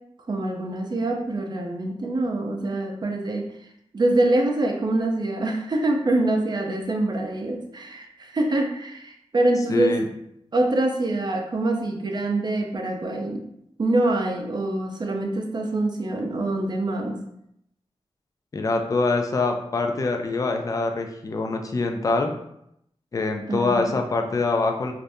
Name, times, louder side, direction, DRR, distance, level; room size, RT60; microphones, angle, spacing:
voice 1, 0.3-3.5 3.9-9.9 10.5-13.4 13.8-17.2 23.5-23.9, right 2 dB, 40° right, 2 dB, 0.5 m, -25 dB
voice 2, 9.7-10.0 18.5-22.3 23.1-24.9, left 3 dB, 35° left, 3 dB, 0.3 m, -24 dB
3.3 x 2.5 x 2.6 m, 0.76 s
wide cardioid pair, 130°, 11 cm